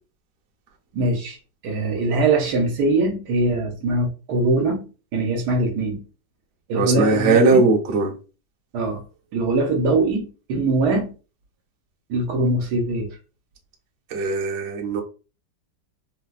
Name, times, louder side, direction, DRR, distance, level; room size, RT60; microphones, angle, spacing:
voice 1, 0.9-1.4 1.6-6.0 6.7-7.6 8.7-9.0 9.3-11.1 12.1-13.2, right 2 dB, 70° right, 1.2 m, -22 dB
voice 2, 6.7-8.1 14.1-15.0, right 3 dB, 55° right, 1.0 m, -19 dB
4.0 x 2.1 x 2.3 m
omnidirectional pair, 1.9 m